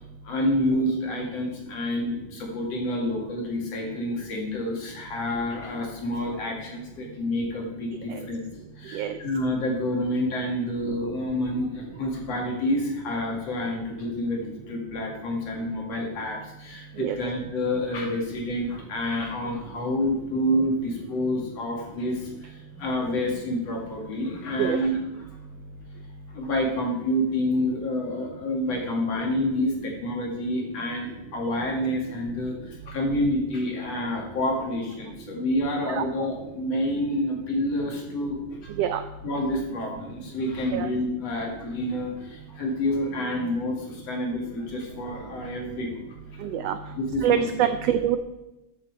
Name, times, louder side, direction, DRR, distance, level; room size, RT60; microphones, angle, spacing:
voice 1, 0.2-8.4 8.8-25.0 26.3-38.7 39.2-46.0 47.0-47.4, left 1 dB, 60° left, 0 dB, 3.1 m, -28 dB
voice 2, 46.4-46.8 47.2-48.2, right 10 dB, 85° right, 9 dB, 1.4 m, -24 dB
13.5 x 7.6 x 4.7 m, 0.96 s
omnidirectional pair, 3.5 m